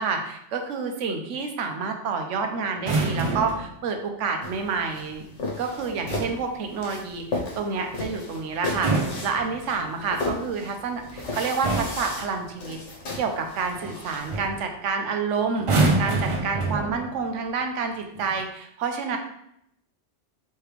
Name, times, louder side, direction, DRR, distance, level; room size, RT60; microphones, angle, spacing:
voice 1, 0.0-5.3 5.6-8.9 9.2-12.8 13.2-19.2, right 5 dB, 90° right, 5 dB, 1.0 m, -29 dB
sound 1, 2.7-3.7 5.8-6.4 8.6-10.0 11.0-11.2 11.6-12.1 13.8-14.0 14.3-14.6 15.6-17.2 18.2-18.4, right 3 dB, 60° right, 0.3 m, -26 dB
sound 2, 4.4-14.4, left 3 dB, 80° left, 1.3 m, -35 dB
4.8 x 3.4 x 3.2 m, 0.75 s
omnidirectional pair, 1.2 m